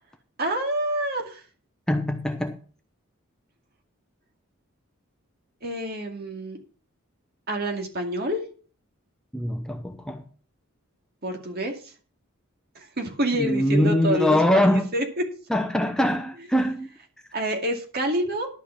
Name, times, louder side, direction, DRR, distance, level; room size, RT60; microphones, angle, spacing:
voice 1, 0.4-1.4 5.6-6.6 7.5-8.4 11.2-11.9 12.8-15.1 17.3-18.5, right 1 dB, 45° right, 2.4 m, -27 dB
voice 2, 1.9-2.6 9.3-10.2 13.4-14.9 15.5-16.9, left 1 dB, 5° left, 0.7 m, -23 dB
11.5 x 5.5 x 7.2 m
head